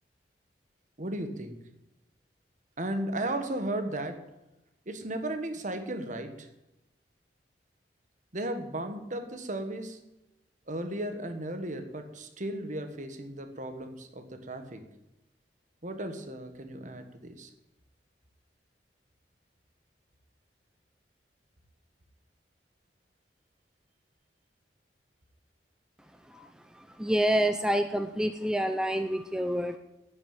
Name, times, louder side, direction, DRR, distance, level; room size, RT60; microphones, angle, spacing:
voice 1, 1.0-1.6 2.8-4.3 4.9-6.5 8.3-10.0 10.7-14.9 15.8-17.5, right 1 dB, 45° right, 8 dB, 1.5 m, -35 dB
voice 2, 26.2-29.8, equal, 5° right, 7 dB, 0.6 m, -28 dB
9.8 x 9.6 x 9.0 m, 0.93 s
head